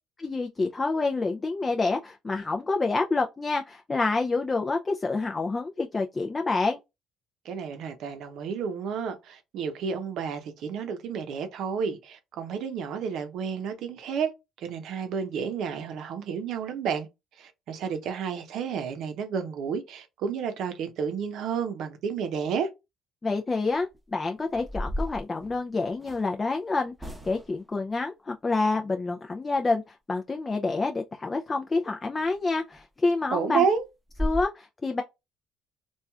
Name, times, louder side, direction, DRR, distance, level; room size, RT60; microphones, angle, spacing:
voice 1, 0.2-6.8 23.2-33.6 34.2-35.0, left 3 dB, 30° left, 0.4 m, -28 dB
voice 2, 7.4-14.3 14.6-17.1 17.4-22.7 33.3-33.8, right 6 dB, 70° right, 0.7 m, -31 dB
sound 1, 23.7-24.0 24.5-26.3 27.0-27.6 32.2-32.3 32.7-32.8 33.2-33.3 33.7-33.8 34.1-34.4, left 1 dB, 10° right, 0.9 m, -34 dB
3.1 x 2.4 x 2.3 m
supercardioid pair, 65°, 0 cm